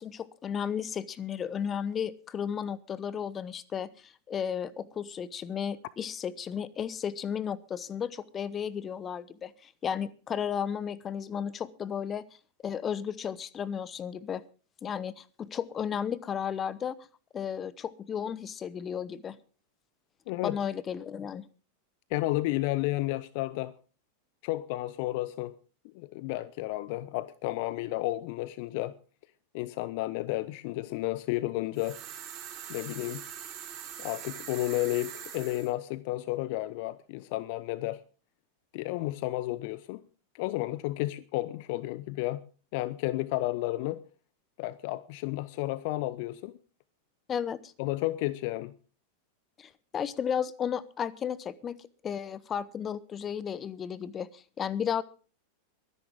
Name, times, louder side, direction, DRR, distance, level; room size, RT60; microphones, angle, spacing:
voice 1, 0.0-12.2 12.6-14.4 14.8-17.0 17.3-19.4 20.4-21.5 47.3-47.7 49.6-51.8 52.0-55.0, left 8 dB, 25° left, 0.9 m, -34 dB
voice 2, 20.3-20.6 22.1-23.7 24.4-25.5 25.8-29.0 29.5-32.0 32.7-33.2 34.0-38.0 38.7-40.0 40.3-42.4 42.7-44.0 44.6-46.6 47.8-48.8, left 18 dB, 45° left, 0.6 m, -32 dB
sound 1, 31.7-35.7, right 9 dB, 35° right, 4.4 m, -42 dB
23.0 x 11.0 x 3.6 m
figure-of-eight pair, 90°, 0 cm